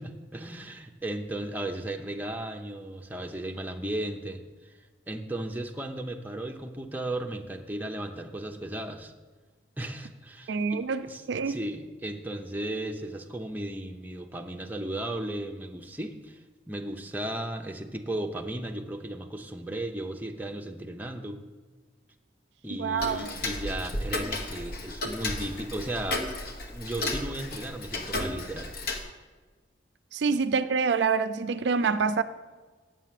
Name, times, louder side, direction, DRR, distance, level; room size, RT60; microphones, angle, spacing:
voice 1, 0.0-4.7 5.1-9.1 9.8-16.4 16.7-21.4 22.6-26.3 26.7-28.7 30.3-30.4, right 1 dB, 10° right, 0.7 m, -35 dB
voice 2, 10.5-11.6 22.7-23.3 30.1-32.2, right 5 dB, 70° right, 0.4 m, -26 dB
Tick-tock, 23.0-29.0, left 2 dB, 55° left, 1.1 m, -34 dB
8.3 x 7.4 x 7.6 m
head